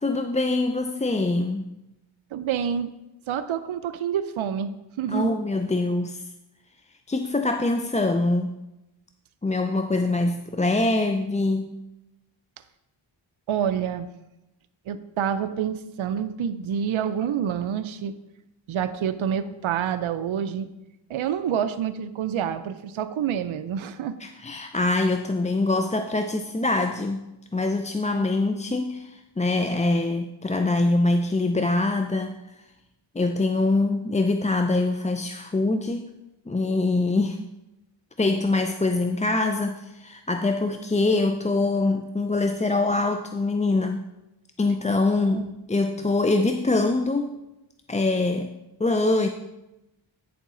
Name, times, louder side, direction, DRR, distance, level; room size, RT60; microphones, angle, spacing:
voice 1, 0.0-1.7 5.1-6.3 7.1-8.5 9.4-11.8 24.2-27.2 27.5-32.4 33.1-36.1 36.5-37.4 38.2-44.0 44.6-47.4 47.9-48.5 48.8-49.3, left 2 dB, 15° left, 6 dB, 0.4 m, -24 dB
voice 2, 2.3-2.9 3.3-4.7 5.0-5.3 13.5-14.1 14.9-18.1 18.7-20.7 21.1-24.1 45.1-45.5, right 8 dB, 75° right, 11 dB, 0.5 m, -27 dB
9.2 x 7.0 x 3.7 m, 0.94 s
cardioid pair, 45°, 48 cm